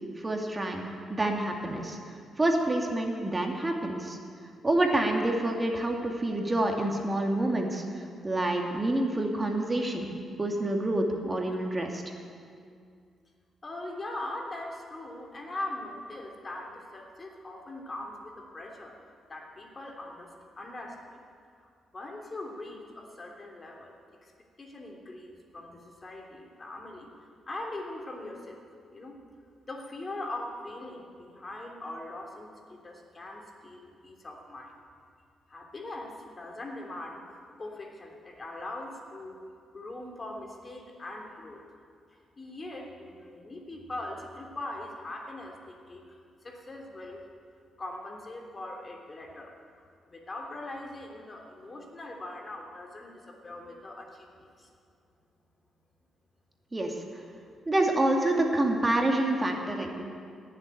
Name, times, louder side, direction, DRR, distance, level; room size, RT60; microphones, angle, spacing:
voice 1, 0.2-0.8 1.1-2.0 2.4-4.2 4.6-10.1 10.4-12.0 56.7-56.9 57.7-60.1, right 1 dB, 25° right, 2 dB, 2.3 m, -27 dB
voice 2, 13.6-18.9 19.3-20.3 20.6-21.2 21.6-23.9 24.2-24.3 24.6-27.1 27.5-28.6 28.9-29.2 29.6-34.7 35.5-39.4 39.7-41.6 42.4-46.1 46.4-47.3 47.8-49.6 50.1-54.3 54.6-54.7 58.2-58.3, left 2 dB, 35° left, 1 dB, 3.2 m, -41 dB
17.0 x 7.7 x 9.2 m, 2.3 s
supercardioid pair, 50°, 0 cm